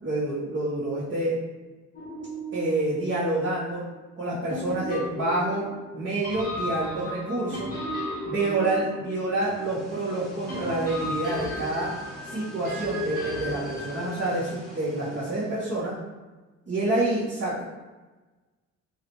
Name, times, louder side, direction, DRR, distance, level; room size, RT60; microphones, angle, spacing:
voice 1, 0.0-1.4 2.5-3.8 4.2-5.6 5.9-7.7 8.2-11.9 12.2-15.9 16.7-17.6, right 2 dB, 40° right, -12 dB, 1.3 m, -28 dB
sound 1, 1.9-3.6 4.5-9.9 10.5-14.4, equal, 30° left, 1.0 m, -35 dB
sound 2, 9.2-16.0, equal, ahead, 1.0 m, -46 dB
3.1 x 2.8 x 3.0 m, 1.2 s
cardioid pair, 90°, 30 cm